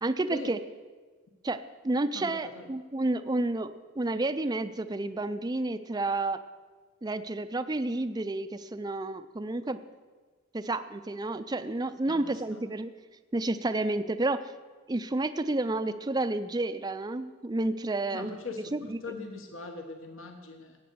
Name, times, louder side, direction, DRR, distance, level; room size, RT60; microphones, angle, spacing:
voice 1, 0.0-0.6 1.4-1.6 1.8-6.4 7.0-9.8 10.5-12.9 13.3-14.5 14.9-18.3 18.7-19.0, right 2 dB, 20° right, 11 dB, 0.4 m, -30 dB
voice 2, 2.1-2.7 12.1-12.2 12.5-12.6 18.1-18.6 19.0-20.8, left 3 dB, 65° left, 5 dB, 1.2 m, -40 dB
14.5 x 8.8 x 6.9 m, 1.4 s
head